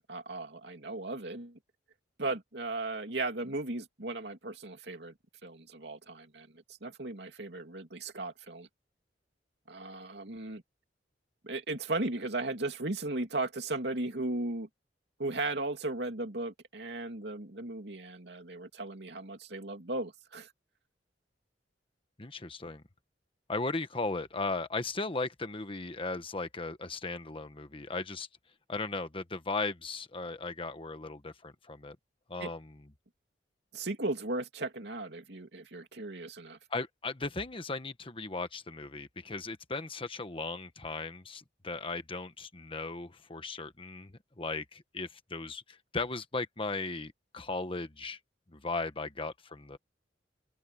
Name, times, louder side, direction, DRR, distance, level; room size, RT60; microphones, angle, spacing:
voice 1, 0.1-1.6 2.2-5.1 5.4-8.7 9.7-10.6 11.4-14.7 15.2-20.5 32.4-32.5 33.7-36.6, right 2 dB, 65° right, 2.9 m, -36 dB
voice 2, 22.2-22.8 23.5-28.3 28.7-32.0 32.3-32.7 36.7-48.2 48.5-49.8, left 3 dB, 30° left, 1.3 m, -37 dB
open air
head